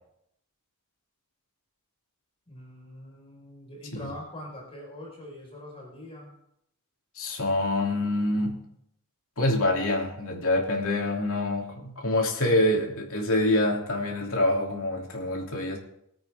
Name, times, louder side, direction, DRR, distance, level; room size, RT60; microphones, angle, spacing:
voice 1, 2.5-6.3, left 1 dB, 25° left, -3 dB, 5.0 m, -43 dB
voice 2, 7.1-8.6 9.4-15.8, left 1 dB, 65° left, 0 dB, 3.0 m, -26 dB
23.5 x 8.6 x 3.7 m, 0.75 s
head